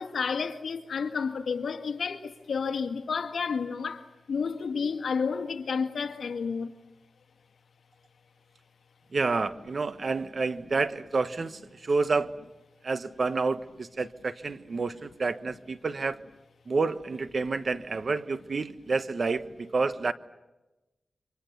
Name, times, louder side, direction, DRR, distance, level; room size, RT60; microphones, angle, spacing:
voice 1, 0.0-6.7, left 5 dB, 85° left, 1.9 m, -31 dB
voice 2, 9.1-12.4 12.8-16.2 16.7-20.1, right 4 dB, 55° right, 1.3 m, -29 dB
29.0 x 25.5 x 6.8 m
cardioid pair, 70°, 0 cm